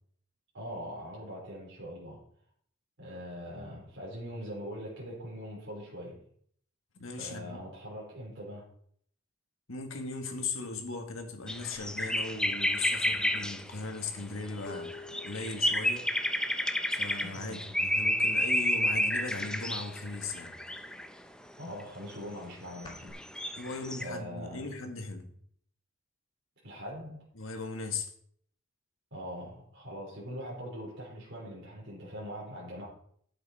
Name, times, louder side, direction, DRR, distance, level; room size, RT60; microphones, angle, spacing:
voice 1, 0.5-2.2 3.0-6.2 7.2-8.7 17.2-17.6 21.6-23.2 24.0-24.7 26.6-27.3 29.1-32.9, equal, 60° right, 3.6 m, -42 dB
voice 2, 7.0-7.7 9.7-14.9 15.2-16.1 16.9-20.6 23.6-25.3 27.4-28.1, left 3 dB, 70° left, 1.7 m, -38 dB
sound 1, 11.5-13.7 14.4-21.1 21.8-21.9 22.9-24.0, left 1 dB, 5° left, 0.6 m, -30 dB
sound 2, 11.8-11.9 12.3-18.0 18.2-18.7 19.0-20.1 20.5-23.1, left 3 dB, 25° left, 2.4 m, -50 dB
11.0 x 7.8 x 4.2 m
head